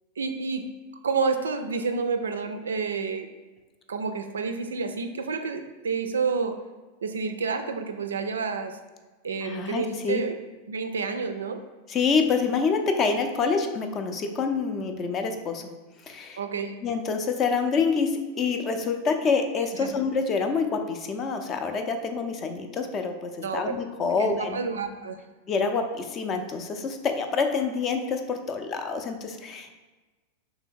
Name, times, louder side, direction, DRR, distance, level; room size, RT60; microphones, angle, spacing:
voice 1, 0.2-0.6 1.0-3.3 3.9-6.6 7.0-8.8 9.2-10.4 10.7-11.6 16.4-16.7 19.8-19.9 23.4-23.7 24.2-25.2, right 5 dB, 70° right, 7 dB, 0.3 m, -29 dB
voice 2, 9.4-10.2 11.9-15.6 16.0-16.4 16.8-24.6 25.5-29.8, left 5 dB, 30° left, 6 dB, 0.4 m, -27 dB
3.4 x 2.9 x 4.4 m, 1.2 s
figure-of-eight pair, 90°, 0 cm